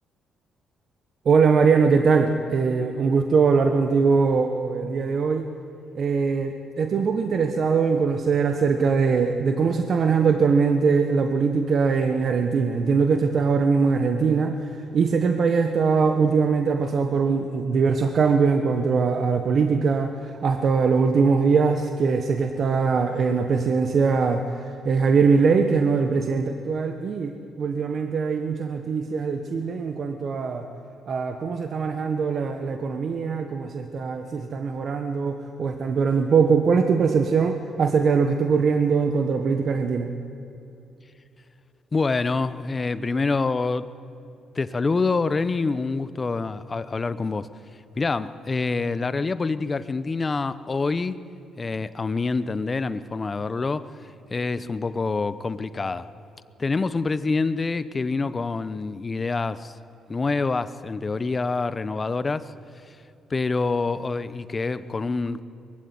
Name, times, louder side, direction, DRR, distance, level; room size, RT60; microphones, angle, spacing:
voice 1, 1.2-5.5 5.9-30.7 31.1-40.1, right 5 dB, 55° right, 6 dB, 1.4 m, -22 dB
voice 2, 41.9-43.9 44.5-47.5 47.9-51.2 51.6-56.1 56.6-59.8 60.1-62.5 63.3-65.4, left 3 dB, 30° left, 14 dB, 0.9 m, -26 dB
22.0 x 15.5 x 9.7 m, 2.7 s
cardioid pair, 90°, 0 cm